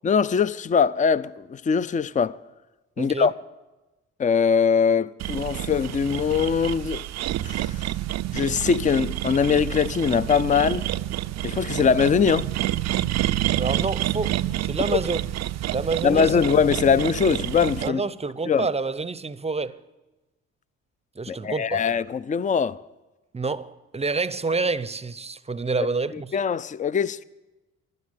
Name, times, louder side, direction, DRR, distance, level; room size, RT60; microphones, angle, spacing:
voice 1, 0.0-2.4 3.0-3.3 4.2-7.1 7.4-7.8 8.3-10.8 11.4-12.5 16.0-18.0 18.5-18.7 21.3-22.8 26.3-27.2, left 6 dB, 25° left, 0.5 m, -22 dB
voice 2, 3.0-3.3 13.6-15.3 15.7-16.4 17.8-19.8 21.2-21.8 23.3-26.4, right 4 dB, 20° right, 0.7 m, -28 dB
sound 1, 5.2-17.9, right 14 dB, 55° right, 0.5 m, -28 dB
12.0 x 10.5 x 9.9 m
hypercardioid pair, 45°, 33 cm